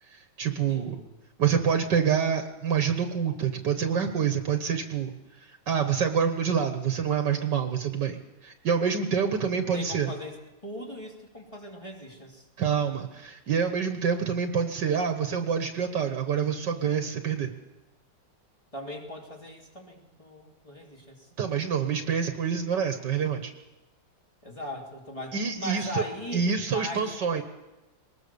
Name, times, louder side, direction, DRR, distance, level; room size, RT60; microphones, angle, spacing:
voice 1, 0.1-1.0 1.4-5.1 5.4-10.1 12.6-17.5 21.4-23.5 25.3-26.0 26.3-27.4, right 7 dB, 70° right, 6 dB, 1.9 m, -27 dB
voice 2, 0.7-1.1 9.7-10.4 10.6-12.5 18.7-21.3 24.4-27.1 27.3-27.4, left 1 dB, 15° left, -2 dB, 3.2 m, -39 dB
21.5 x 19.5 x 7.0 m, 1.0 s
omnidirectional pair, 2.0 m